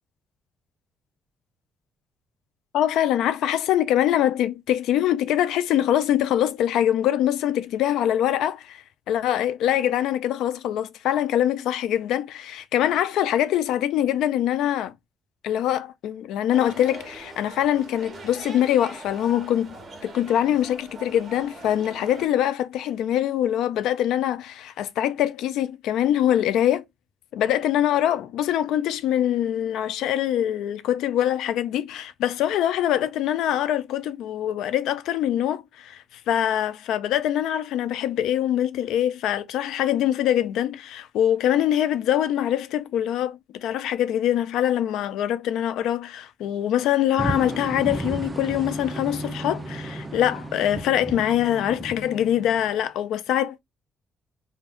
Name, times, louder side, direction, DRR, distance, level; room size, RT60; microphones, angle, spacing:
voice 1, 2.7-14.9 15.4-19.8 20.0-26.8 27.3-53.6, left 11 dB, 85° left, 0.4 m, -24 dB
sound 1, 16.5-22.3, right 3 dB, 40° right, 0.9 m, -42 dB
sound 2, 47.2-52.9, right 2 dB, 25° right, 0.5 m, -33 dB
2.5 x 2.3 x 3.5 m
cardioid pair, 90°, 0 cm